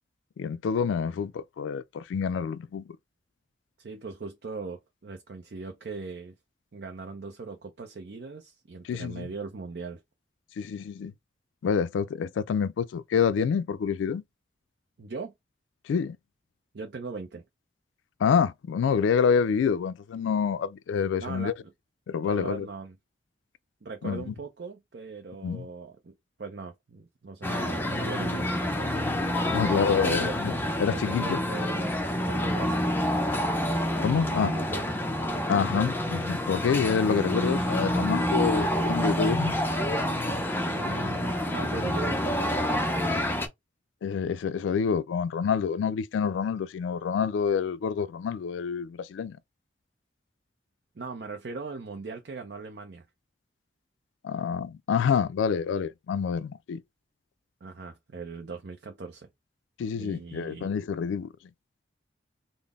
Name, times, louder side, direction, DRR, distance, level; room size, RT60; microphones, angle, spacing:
voice 1, 0.4-2.8 8.9-9.3 10.6-11.1 11.6-14.2 15.9-16.2 18.2-21.5 22.1-22.7 24.0-24.3 25.4-25.7 29.5-30.5 30.8-31.4 34.0-34.5 35.5-39.5 44.0-49.4 54.2-56.8 59.8-61.3, left 6 dB, 85° left, 0.3 m, -27 dB
voice 2, 3.8-6.3 6.7-10.0 15.0-15.3 16.7-17.4 21.2-21.7 22.2-23.0 23.8-28.9 29.2-30.4 30.9-31.9 32.3-32.9 34.2-34.9 40.7-43.1 51.0-53.1 57.6-59.3 59.9-60.7, right 4 dB, 60° right, 0.5 m, -39 dB
sound 1, 27.4-43.5, left 1 dB, 10° left, 0.5 m, -28 dB
3.8 x 2.0 x 3.5 m
head